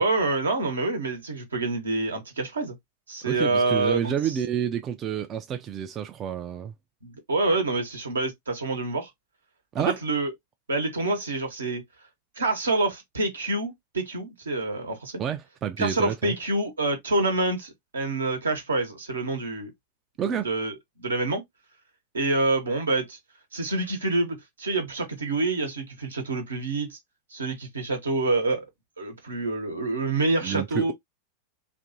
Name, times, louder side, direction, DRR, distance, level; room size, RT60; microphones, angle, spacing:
voice 1, 0.0-2.7 3.1-4.1 7.0-9.1 9.8-10.3 10.7-11.8 12.4-15.1 15.8-19.7 20.4-21.4 22.1-23.2 23.5-27.0 27.3-28.7 29.0-30.9, right 2 dB, 75° right, 0.9 m, -27 dB
voice 2, 3.3-6.7 9.7-10.0 15.2-16.4 20.2-20.5 30.4-30.9, right 9 dB, 30° right, 0.3 m, -29 dB
2.8 x 2.5 x 2.6 m
figure-of-eight pair, 90°, 0 cm